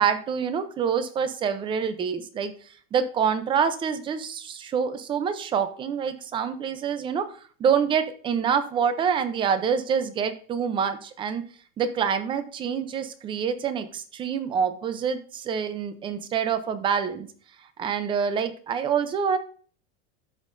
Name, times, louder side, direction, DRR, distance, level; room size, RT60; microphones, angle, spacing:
voice 1, 0.0-2.5 2.9-11.4 11.8-17.3 17.8-19.4, right 7 dB, 15° right, 11 dB, 0.5 m, -26 dB
13.0 x 5.6 x 2.6 m, 0.44 s
supercardioid pair, 165°, 36 cm